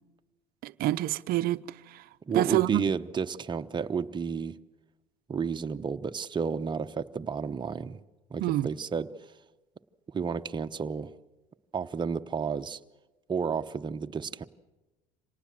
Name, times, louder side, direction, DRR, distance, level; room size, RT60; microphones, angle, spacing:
voice 1, 0.6-2.0 2.3-2.9 8.4-8.7, right 15 dB, 60° right, 0.7 m, -27 dB
voice 2, 2.3-4.5 5.3-8.0 8.3-9.1 10.1-11.1 11.7-12.8 13.3-14.4, right 6 dB, 25° right, 1.0 m, -31 dB
26.0 x 18.5 x 7.6 m
supercardioid pair, 90°, 17 cm